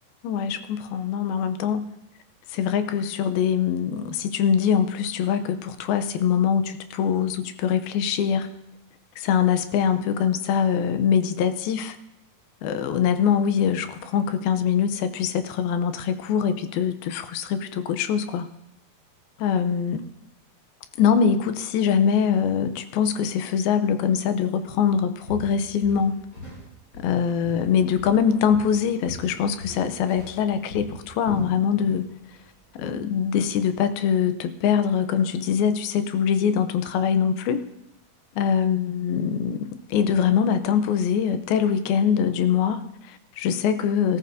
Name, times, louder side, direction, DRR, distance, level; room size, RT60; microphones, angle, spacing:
voice 1, 0.2-1.9 2.5-8.5 9.2-12.0 12.6-18.5 19.4-20.0 21.0-26.2 27.0-32.1 32.8-37.6 38.4-44.2, left 7 dB, 80° left, 10 dB, 2.6 m, -23 dB
Walk footsteps, 24.7-24.9 25.3-26.7 26.9-28.2 28.5-32.0 32.3-32.6 33.1-33.2, left 1 dB, 25° left, 5.5 m, -40 dB
19.0 x 14.0 x 2.7 m, 0.83 s
omnidirectional pair, 4.2 m